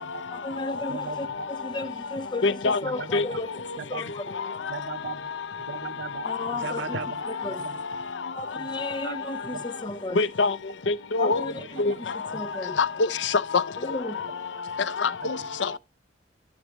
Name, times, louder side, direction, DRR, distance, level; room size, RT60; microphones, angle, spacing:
voice 1, 0.3-4.3 6.2-7.0 7.3-7.7 8.3-10.2 11.2-12.8 13.8-14.2, left 2 dB, 25° left, 0.9 m, -35 dB
voice 2, 0.9-1.5 2.8-3.4 3.8-4.1 4.7-5.3 5.7-7.2 7.6-7.8 8.5-8.7 9.0-9.1 9.5-9.6 11.4-11.9 15.2-15.5, right 5 dB, 80° right, 0.9 m, -37 dB
voice 3, 2.4-2.8 3.1-3.2 10.2-10.5 10.9-11.4 11.8-11.9 12.8-13.6 15.0-15.1 15.6-15.8, left 3 dB, 90° left, 0.6 m, -23 dB
12.5 x 6.5 x 2.9 m
head